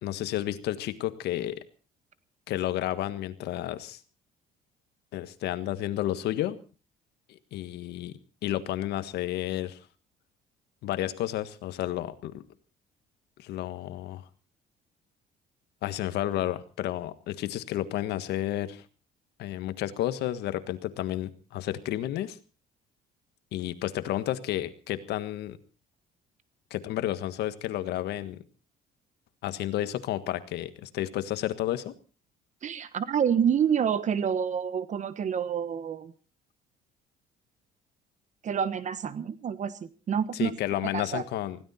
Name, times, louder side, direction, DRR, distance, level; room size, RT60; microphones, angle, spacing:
voice 1, 0.0-1.6 2.5-4.0 5.1-6.6 7.3-9.8 10.8-12.5 13.4-14.2 15.8-18.8 19.4-22.4 23.5-25.6 26.7-28.4 29.4-31.9 40.3-41.6, left 13 dB, 80° left, 12 dB, 1.5 m, -31 dB
voice 2, 32.6-36.1 38.4-40.6 40.9-41.2, right 8 dB, 45° right, 14 dB, 1.2 m, -28 dB
20.5 x 16.0 x 4.3 m, 0.36 s
cardioid pair, 110°, 17 cm